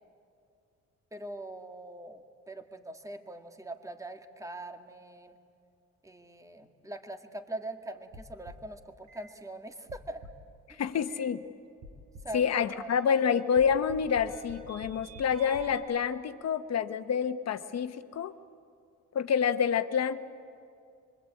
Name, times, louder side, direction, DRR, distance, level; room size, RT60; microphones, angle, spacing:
voice 1, 1.1-5.4 6.0-10.2 10.7-10.8 12.2-12.5 12.7-12.9, right 1 dB, 10° right, 6 dB, 2.0 m, -42 dB
sound 1, 8.1-8.7 9.1-9.3 9.9-10.5 11.1-11.3 11.8-12.4 12.9-15.8, right 2 dB, 85° right, 5.5 m, -48 dB
voice 2, 10.7-11.4 12.3-18.3 19.1-20.2, left 7 dB, 60° left, 9 dB, 1.3 m, -28 dB
25.0 x 24.0 x 8.6 m, 2.5 s
cardioid pair, 90°, 30 cm